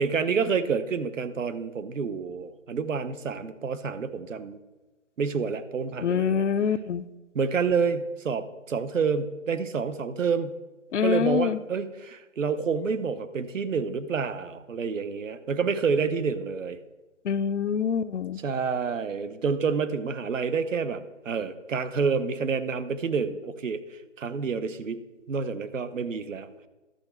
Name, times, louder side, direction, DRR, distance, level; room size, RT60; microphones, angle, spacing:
voice 1, 0.0-4.6 5.2-6.4 7.3-10.6 11.0-16.8 18.4-25.0 25.3-26.7, right 5 dB, 75° right, 12 dB, 0.8 m, -28 dB
voice 2, 6.0-7.0 10.9-11.6 17.2-18.4, left 7 dB, 65° left, 14 dB, 0.5 m, -25 dB
11.5 x 6.8 x 4.4 m, 1.2 s
hypercardioid pair, 155°, 39 cm